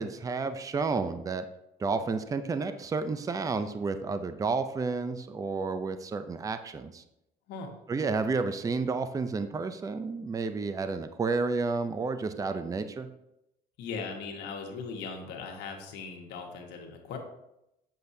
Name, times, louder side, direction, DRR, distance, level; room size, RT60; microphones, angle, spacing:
voice 1, 0.0-1.4 1.8-7.0 7.9-13.1, right 4 dB, 20° right, 10 dB, 0.5 m, -31 dB
voice 2, 7.5-7.8 13.8-17.2, left 5 dB, 85° left, 2 dB, 1.3 m, -39 dB
7.9 x 6.8 x 2.7 m, 0.86 s
cardioid pair, 110°, 17 cm